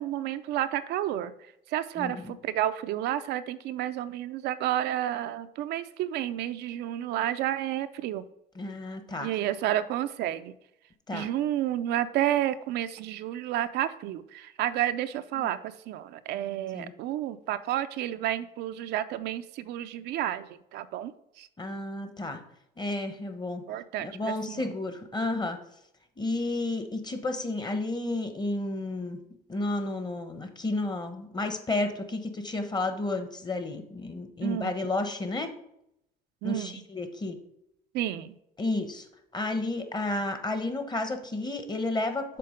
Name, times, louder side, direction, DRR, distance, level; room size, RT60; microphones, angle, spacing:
voice 1, 0.0-1.3 1.7-8.2 9.2-10.5 11.1-21.1 21.4-21.5 23.7-24.6 34.4-34.7 36.4-36.8 37.9-38.4, right 12 dB, 80° right, 11 dB, 0.5 m, -31 dB
voice 2, 2.0-2.3 8.5-9.3 11.1-11.3 15.4-15.5 16.7-16.9 21.6-22.4 22.8-23.6 24.0-25.6 26.2-29.2 29.5-35.5 36.4-37.4 38.6-39.1 39.3-42.4, left 2 dB, 25° left, 7 dB, 1.0 m, -31 dB
6.8 x 3.9 x 5.0 m, 0.78 s
cardioid pair, 110°, 17 cm